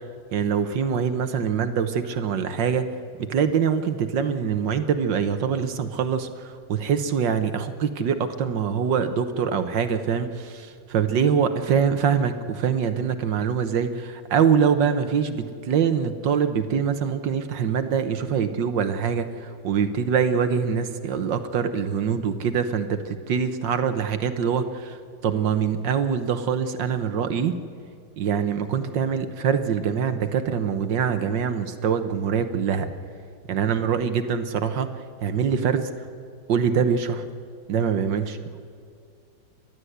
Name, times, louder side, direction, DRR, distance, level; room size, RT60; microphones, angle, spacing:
voice 1, 0.3-2.8 3.2-25.0 25.2-27.5 28.2-32.9 33.5-34.9 35.2-35.9 36.5-37.2 37.7-38.4, right 7 dB, 70° right, 9 dB, 1.6 m, -24 dB
30.0 x 12.5 x 8.0 m, 2.4 s
omnidirectional pair, 2.1 m